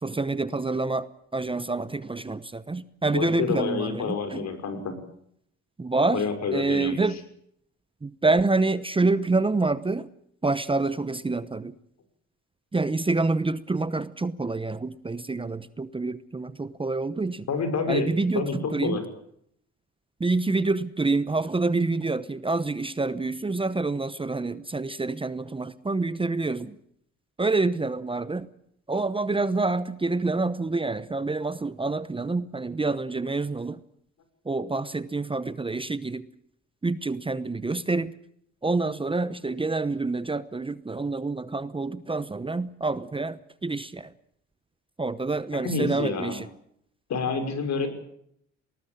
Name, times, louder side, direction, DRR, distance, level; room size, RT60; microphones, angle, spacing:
voice 1, 0.0-4.5 5.8-6.2 6.5-7.2 8.0-10.1 10.4-11.7 12.7-17.5 17.9-19.0 20.2-26.7 27.4-28.5 28.9-33.8 34.4-36.2 36.8-38.1 38.6-44.1 45.0-46.5, right 3 dB, 15° right, 0.9 m, -27 dB
voice 2, 3.1-4.9 6.1-7.0 17.5-19.0 45.6-46.4 47.1-47.9, left 5 dB, 60° left, 5.8 m, -28 dB
20.0 x 19.5 x 8.8 m
cardioid pair, 90°, 30 cm